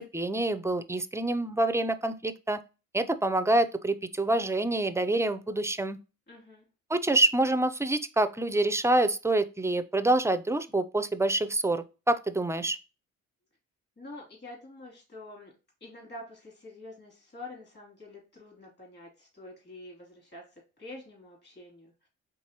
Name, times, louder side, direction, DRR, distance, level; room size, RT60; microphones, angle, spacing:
voice 1, 0.0-2.6 2.9-6.0 6.9-12.8, right 2 dB, 10° right, 0.4 m, -26 dB
voice 2, 6.3-6.6 14.0-15.5 15.8-21.9, left 2 dB, 35° left, 2.8 m, -47 dB
4.6 x 3.7 x 2.9 m
cardioid pair, 90°, 30 cm